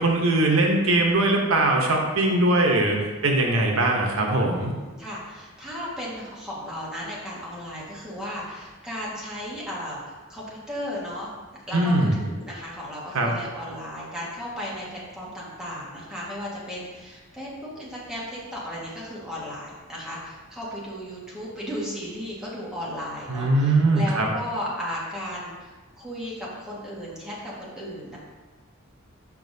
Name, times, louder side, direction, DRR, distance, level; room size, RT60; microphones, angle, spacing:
voice 1, 0.0-3.0 3.2-4.7 11.7-12.2 13.1-13.3 23.3-24.3, right 2 dB, 85° right, 1 dB, 0.9 m, -21 dB
voice 2, 4.5-11.3 11.7-28.2, equal, 5° right, -7 dB, 1.5 m, -35 dB
7.1 x 5.6 x 2.7 m, 1.3 s
head